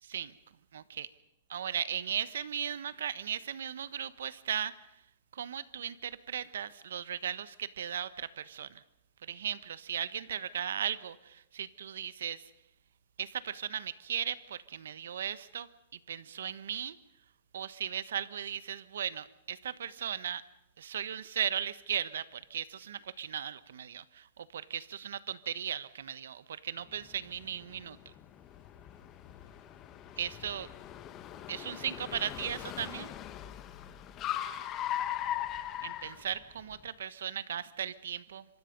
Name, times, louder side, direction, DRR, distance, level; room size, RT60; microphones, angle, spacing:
voice 1, 0.0-0.3 0.7-1.1 1.5-4.7 5.3-8.8 9.2-12.4 13.2-15.7 16.1-17.0 17.5-20.4 20.8-28.0 30.2-30.7 31.5-33.1 35.8-38.4, right 9 dB, 85° right, 16 dB, 1.2 m, -37 dB
Car, 27.0-36.8, left 11 dB, 25° left, 1.4 m, -40 dB
27.0 x 24.5 x 5.4 m, 0.80 s
supercardioid pair, 165°, 0 cm